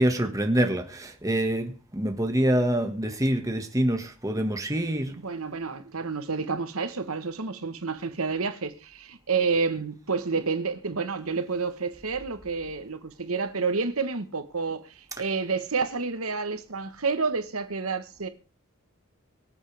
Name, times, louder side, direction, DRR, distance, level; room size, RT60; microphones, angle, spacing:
voice 1, 0.0-5.2, right 1 dB, 15° right, 1.7 m, -25 dB
voice 2, 5.2-18.3, right 4 dB, 90° right, 1.3 m, -29 dB
24.5 x 8.1 x 3.5 m
head